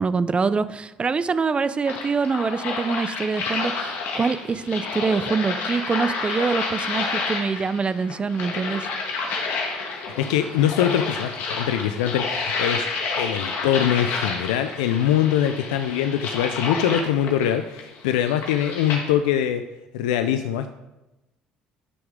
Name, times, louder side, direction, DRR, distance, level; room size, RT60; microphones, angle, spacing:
voice 1, 0.0-8.9, right 5 dB, 30° right, 14 dB, 0.5 m, -25 dB
sound 1, 1.9-19.1, left 4 dB, 70° left, 1.7 m, -30 dB
voice 2, 9.9-19.6 19.9-20.7, left 10 dB, 85° left, 9 dB, 0.4 m, -23 dB
11.0 x 6.1 x 3.7 m, 0.98 s
supercardioid pair, 70°, 4 cm